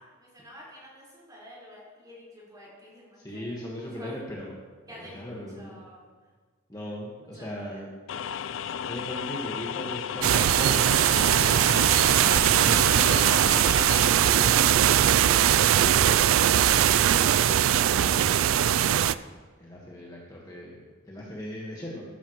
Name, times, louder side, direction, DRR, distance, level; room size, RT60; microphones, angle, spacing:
voice 1, 0.2-4.2 4.9-6.0 7.4-7.8, equal, 20° right, -6 dB, 4.4 m, -49 dB
voice 2, 3.2-4.6 4.9-5.8 6.7-7.9 8.8-11.7 12.4-16.2 17.1-18.6 19.6-22.0, left 1 dB, 20° left, -4 dB, 1.4 m, -39 dB
sound 1, 8.1-14.1, left 8 dB, 65° left, 0.3 m, -34 dB
sound 2, 10.2-19.1, right 10 dB, 80° right, 0.3 m, -20 dB
14.0 x 12.5 x 3.1 m, 1.4 s
head